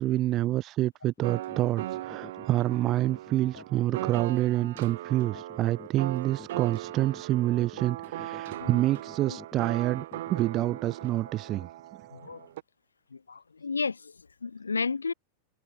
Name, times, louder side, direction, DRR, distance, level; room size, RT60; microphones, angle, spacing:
voice 1, 0.0-11.7, right 15 dB, 35° right, 0.6 m, -27 dB
sound 1, 1.1-11.1, left 5 dB, 15° left, 4.2 m, -49 dB
sound 2, 1.2-12.6, right 15 dB, 55° right, 3.8 m, -39 dB
voice 2, 12.1-12.5 13.1-15.1, left 5 dB, 75° left, 1.7 m, -33 dB
figure-of-eight pair, 90°, 0 cm